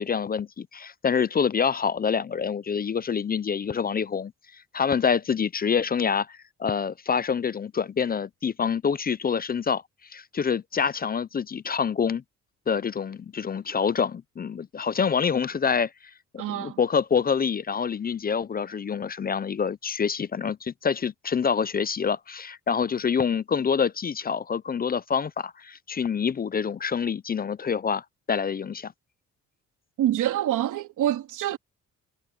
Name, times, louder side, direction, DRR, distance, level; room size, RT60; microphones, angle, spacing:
voice 1, 0.0-4.3 4.7-9.8 10.1-12.2 12.7-15.9 16.5-28.9, left 6 dB, 30° left, 0.6 m, -26 dB
voice 2, 16.4-16.8 30.0-31.6, right 12 dB, 80° right, 3.6 m, -26 dB
cardioid pair, 90°, 30 cm